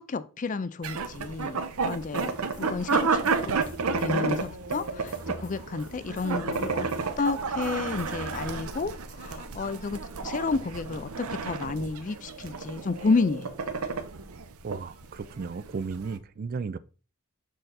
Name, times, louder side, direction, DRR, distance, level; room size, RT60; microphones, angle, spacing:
voice 1, 0.1-3.6 4.0-6.9 7.2-13.5, left 4 dB, 35° left, 0.4 m, -31 dB
sound 1, 0.8-16.2, right 4 dB, 75° right, 0.7 m, -31 dB
sound 2, 1.9-8.9, equal, 55° left, 1.1 m, -47 dB
voice 2, 14.6-16.8, right 5 dB, 40° right, 0.3 m, -34 dB
6.5 x 3.9 x 4.0 m
head